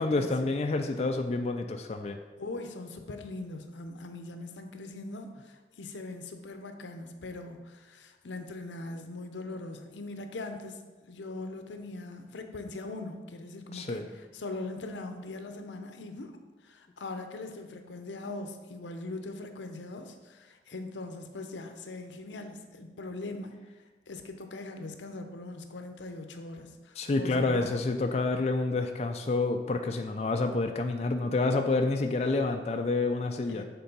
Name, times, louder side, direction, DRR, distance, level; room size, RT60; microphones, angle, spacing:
voice 1, 0.0-2.2 13.7-14.0 27.0-33.6, left 3 dB, 35° left, 4 dB, 0.3 m, -28 dB
voice 2, 2.4-10.8 11.1-16.3 16.6-23.5 24.1-27.7 33.5-33.6, left 2 dB, 90° left, 6 dB, 0.7 m, -41 dB
7.0 x 3.8 x 5.3 m, 1.3 s
head